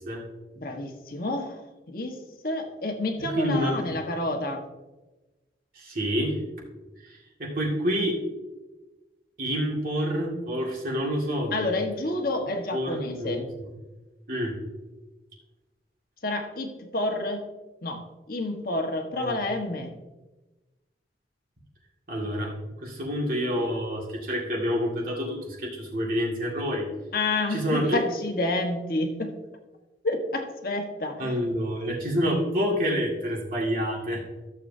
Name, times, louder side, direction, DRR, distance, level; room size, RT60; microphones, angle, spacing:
voice 1, 0.6-2.2 2.4-4.6 11.5-13.4 16.2-17.4 17.8-19.9 27.1-29.3 30.0-31.5, left 2 dB, 55° left, 3 dB, 1.4 m, -29 dB
voice 2, 3.4-3.8 5.8-6.4 7.1-8.2 9.4-11.7 12.7-13.4 14.3-14.6 19.1-19.4 22.1-22.5 22.8-26.9 27.5-28.0 31.2-34.2, equal, 50° right, -3 dB, 2.2 m, -28 dB
14.5 x 7.4 x 2.7 m, 1.1 s
head